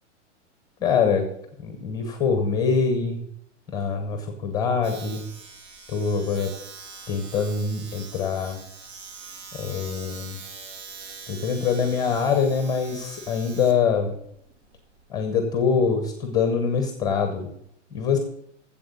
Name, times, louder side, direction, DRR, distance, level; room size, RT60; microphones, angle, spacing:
voice 1, 0.8-1.3 1.6-3.2 3.7-5.2 5.9-6.5 7.1-8.6 9.5-10.4 11.3-14.2 15.1-17.5 17.9-18.2, left 5 dB, 10° left, 6 dB, 0.8 m, -24 dB
Domestic sounds home sounds, 4.8-15.2, right 5 dB, 60° right, 2.0 m, -43 dB
7.7 x 7.7 x 8.2 m, 0.71 s
hypercardioid pair, 165°, 37 cm